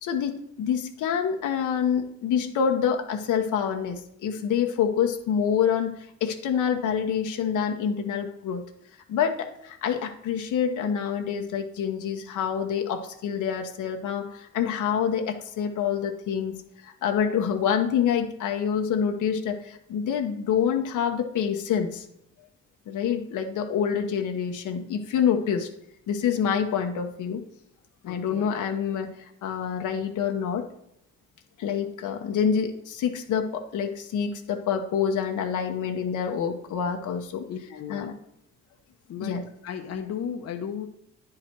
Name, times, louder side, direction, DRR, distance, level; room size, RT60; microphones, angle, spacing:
voice 1, 0.0-8.6 9.1-16.6 16.8-22.1 22.9-25.7 26.1-27.4 28.0-29.1 29.4-30.7 31.6-38.1 39.2-39.4, left 7 dB, 80° left, 4 dB, 1.0 m, -27 dB
voice 2, 28.0-28.6 32.0-32.1 37.5-38.1 39.1-40.9, left 8 dB, 55° left, 5 dB, 0.9 m, -35 dB
9.6 x 4.9 x 4.5 m, 0.75 s
cardioid pair, 90°, 30 cm